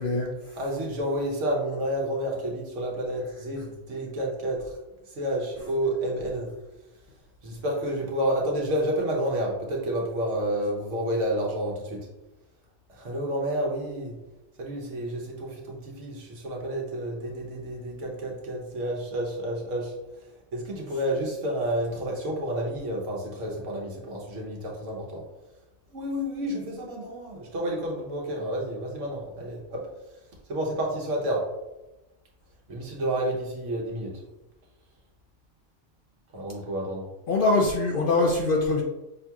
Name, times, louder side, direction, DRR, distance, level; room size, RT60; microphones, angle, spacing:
voice 1, 0.0-0.6 37.3-38.8, left 3 dB, 60° left, 0 dB, 0.5 m, -23 dB
voice 2, 0.6-4.7 5.1-6.5 7.4-12.1 12.9-14.2 14.6-25.2 25.9-29.8 30.5-31.4 32.7-34.2 36.3-37.0, right 1 dB, 70° right, -1 dB, 1.2 m, -30 dB
5.8 x 2.8 x 2.3 m, 1.0 s
omnidirectional pair, 1.3 m